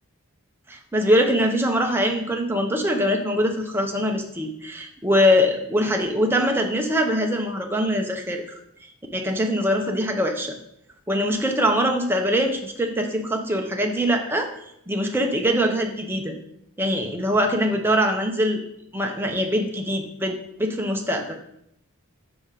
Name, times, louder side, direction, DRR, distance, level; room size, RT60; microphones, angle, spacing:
voice 1, 0.7-8.4 9.1-10.6 11.1-14.5 14.9-16.4 16.8-18.6 18.9-21.4, equal, 10° right, 3 dB, 0.6 m, -23 dB
5.5 x 4.7 x 3.7 m, 0.75 s
head